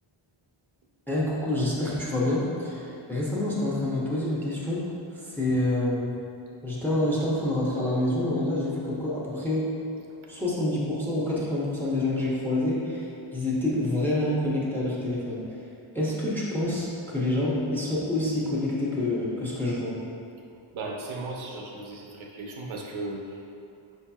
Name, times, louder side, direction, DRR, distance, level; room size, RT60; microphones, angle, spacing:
voice 1, 1.1-4.8 5.1-6.1 6.6-9.7 10.3-15.4 15.9-19.9, left 1 dB, 5° left, -6 dB, 0.6 m, -27 dB
voice 2, 20.7-23.4, right 2 dB, 70° right, -1 dB, 0.6 m, -36 dB
4.8 x 2.8 x 2.2 m, 2.6 s
wide cardioid pair, 100°, 50 cm